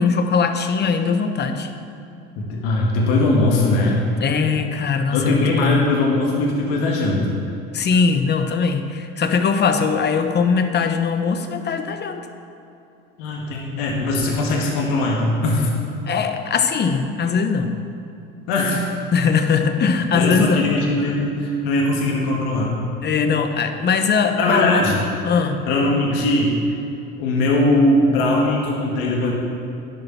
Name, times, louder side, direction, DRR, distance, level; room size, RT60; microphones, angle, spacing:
voice 1, 0.0-1.7 4.2-5.8 7.7-12.2 16.1-17.7 19.1-20.7 23.0-24.8 25.2-25.6, left 5 dB, 35° left, 7 dB, 1.0 m, -20 dB
voice 2, 2.4-4.1 5.1-7.4 13.2-15.7 18.5-18.8 20.1-22.8 24.4-25.0 25.7-26.6 27.2-29.3, left 2 dB, 75° left, -2 dB, 1.9 m, -20 dB
10.5 x 6.9 x 5.9 m, 2.8 s
supercardioid pair, 85°, 30 cm